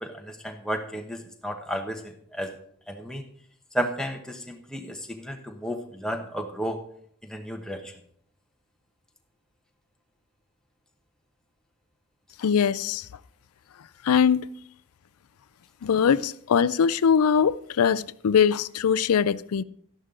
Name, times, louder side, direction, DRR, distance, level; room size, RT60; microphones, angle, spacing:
voice 1, 0.0-2.5 2.9-3.2 3.7-6.8 7.2-7.9, equal, 5° left, 1.0 m, -33 dB
voice 2, 12.4-13.1 14.0-14.5 15.8-19.6, left 7 dB, 75° left, 0.4 m, -22 dB
12.5 x 11.0 x 3.8 m
head